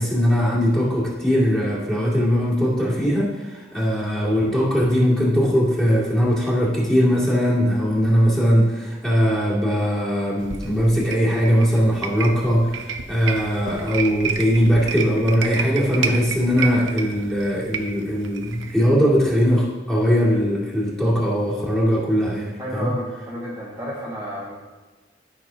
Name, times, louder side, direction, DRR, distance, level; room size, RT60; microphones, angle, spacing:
voice 1, 0.0-22.9, equal, 5° left, -7 dB, 2.2 m, -20 dB
sound 1, 10.4-18.9, right 6 dB, 85° right, 0.7 m, -31 dB
voice 2, 22.6-24.5, equal, 15° right, -8 dB, 1.3 m, -31 dB
13.0 x 6.3 x 2.8 m, 1.3 s
head